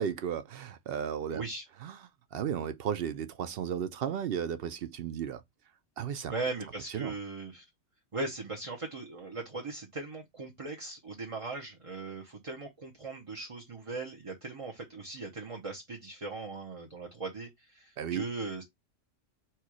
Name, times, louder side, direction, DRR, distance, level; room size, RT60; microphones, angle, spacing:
voice 1, 0.0-1.4 1.8-1.9 2.3-5.4 6.0-6.3 6.9-7.1 18.0-18.3, right 8 dB, 60° right, 0.6 m, -34 dB
voice 2, 1.3-1.6 6.3-7.6 8.1-18.6, right 3 dB, 30° right, 0.8 m, -39 dB
4.4 x 2.4 x 4.7 m
omnidirectional pair, 1.3 m